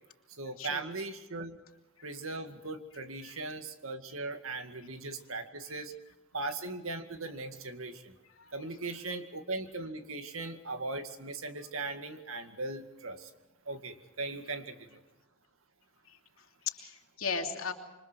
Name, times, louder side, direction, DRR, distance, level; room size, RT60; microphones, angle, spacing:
voice 1, 0.3-1.6 2.0-5.9 6.3-8.1 8.5-13.3 13.7-15.0, right 3 dB, 90° right, 7 dB, 2.2 m, -39 dB
voice 2, 16.1-17.7, left 5 dB, 90° left, 3 dB, 2.8 m, -37 dB
27.5 x 24.5 x 4.6 m, 1.1 s
head